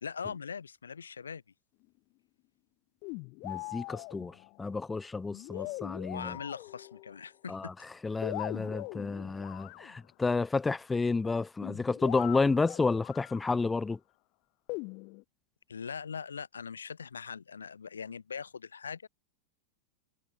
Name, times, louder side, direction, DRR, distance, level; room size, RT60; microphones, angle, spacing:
voice 1, 0.0-1.4 5.5-5.7 6.1-7.7 15.7-19.1, left 6 dB, 70° left, 1.9 m, -41 dB
sound 1, 3.0-4.6 5.3-7.2 8.2-10.0 11.6-13.5 14.7-15.2, left 31 dB, 45° left, 5.3 m, -41 dB
voice 2, 3.4-6.4 7.5-7.7 8.0-14.0, left 4 dB, 10° left, 1.2 m, -31 dB
figure-of-eight pair, 90°, 0 cm